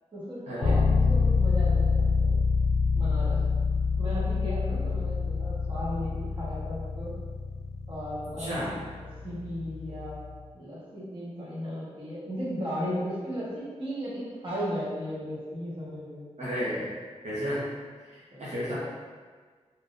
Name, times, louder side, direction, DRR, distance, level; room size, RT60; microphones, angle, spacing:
voice 1, 0.1-2.3 2.9-3.4 4.0-7.1 7.9-8.8 9.2-10.2 10.5-16.2 18.3-18.6, equal, 45° right, -9 dB, 1.3 m, -36 dB
sound 1, 0.6-10.3, left 4 dB, 65° left, 0.4 m, -27 dB
voice 2, 8.4-8.7 16.4-16.9 17.2-17.6 18.4-18.7, equal, 75° right, -11 dB, 0.9 m, -31 dB
3.5 x 2.7 x 2.5 m, 1.5 s
wide cardioid pair, 80°, 12 cm